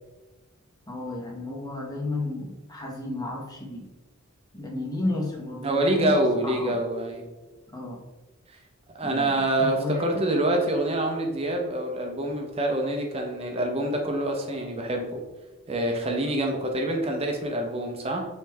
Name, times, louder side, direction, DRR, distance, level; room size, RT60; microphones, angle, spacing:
voice 1, 0.9-3.9 4.5-6.8 7.7-8.0 9.0-10.2, left 2 dB, 15° left, -1 dB, 0.7 m, -32 dB
voice 2, 5.6-7.3 9.0-15.2 15.7-18.2, right 1 dB, 25° right, 2 dB, 0.6 m, -26 dB
5.1 x 3.2 x 3.3 m, 1.1 s
head